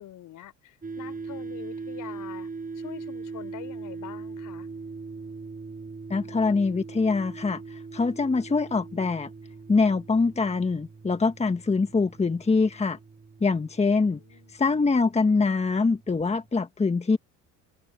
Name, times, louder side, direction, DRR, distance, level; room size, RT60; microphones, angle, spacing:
voice 1, 0.0-2.5 2.7-4.7 13.9-14.5, left 12 dB, 65° left, 4.3 m, -45 dB
sound 1, 0.8-16.0, right 4 dB, 25° right, 4.5 m, -41 dB
voice 2, 6.1-9.3 9.7-13.0 13.4-14.2 14.5-17.2, left 4 dB, 20° left, 1.3 m, -24 dB
supercardioid pair, 85°, 33 cm